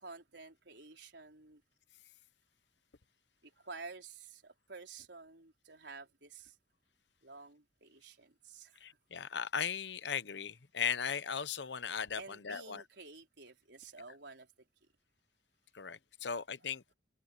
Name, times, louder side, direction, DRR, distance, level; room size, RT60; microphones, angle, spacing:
voice 1, 0.0-1.6 3.4-6.6 7.2-8.8 12.2-14.7, right 4 dB, 80° right, 4.1 m, -51 dB
voice 2, 8.8-12.8 15.7-16.8, left 7 dB, 80° left, 0.9 m, -37 dB
open air
head